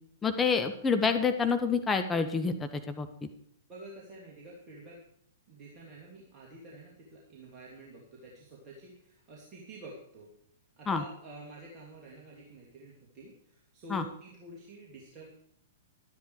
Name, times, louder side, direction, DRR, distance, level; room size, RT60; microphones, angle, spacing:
voice 1, 0.2-3.1 10.9-11.0 13.9-14.0, left 5 dB, 15° left, 7 dB, 0.9 m, -28 dB
voice 2, 3.7-5.0 5.5-10.3 10.8-15.3, right 1 dB, 25° right, -4 dB, 2.8 m, -49 dB
12.5 x 10.5 x 4.8 m, 0.70 s
figure-of-eight pair, 105°, 0 cm